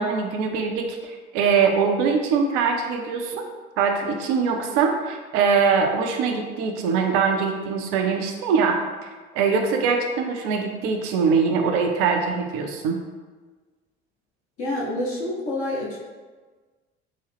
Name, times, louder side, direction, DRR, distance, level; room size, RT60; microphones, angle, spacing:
voice 1, 0.0-3.4 3.8-13.0, right 5 dB, 60° right, 3 dB, 0.5 m, -23 dB
voice 2, 14.6-16.0, left 1 dB, 40° left, -5 dB, 1.0 m, -28 dB
3.7 x 2.0 x 3.4 m, 1.4 s
figure-of-eight pair, 55°, 33 cm